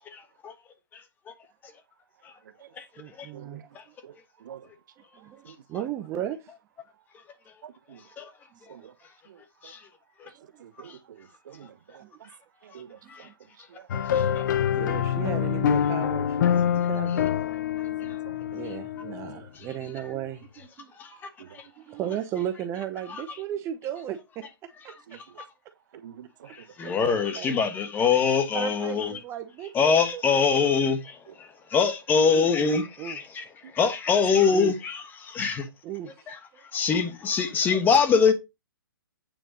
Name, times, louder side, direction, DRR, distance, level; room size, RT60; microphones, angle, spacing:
voice 1, 3.0-4.0 5.1-6.5 8.5-8.6 10.3-11.0 12.0-12.2 13.0-13.2 14.7-17.3 18.5-20.9 21.9-25.2 26.8-27.6 28.5-30.6 32.3-32.5 33.0-33.2 34.5-34.8 35.8-36.7, right 10 dB, 20° right, 0.8 m, -36 dB
voice 2, 5.4-5.9 7.6-8.0 8.7-8.9 9.3-9.7 10.6-12.3 12.6-13.3 13.7-14.6 15.1-15.3 17.8-18.6 19.1-19.2 21.4-21.5 25.1-25.2 26.0-26.5 31.3-31.4 33.8-33.9, right 9 dB, 55° right, 0.8 m, -48 dB
sound 1, 13.9-19.5, left 9 dB, 55° left, 0.7 m, -26 dB
voice 3, 14.1-14.5 19.5-19.7 25.1-25.2 26.5-29.1 29.7-33.4 33.7-35.7 36.3-36.4 36.7-38.3, left 5 dB, 15° left, 1.3 m, -24 dB
9.1 x 4.4 x 5.2 m
hypercardioid pair, 140°, 12 cm